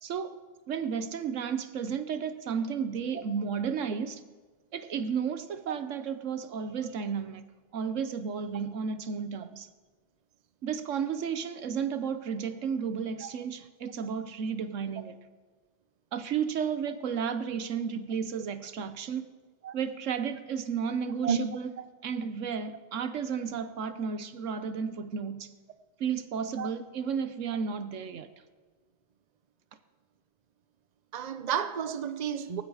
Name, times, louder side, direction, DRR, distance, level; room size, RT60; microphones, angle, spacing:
voice 1, 0.0-0.4 0.7-4.2 4.7-7.4 7.7-9.7 10.6-15.2 16.1-19.3 19.7-21.7 22.0-25.5 26.0-28.3, right 6 dB, 90° right, 1.3 m, -33 dB
voice 2, 31.1-32.6, right 8 dB, 40° right, 0.8 m, -31 dB
18.0 x 15.0 x 4.9 m
omnidirectional pair, 1.3 m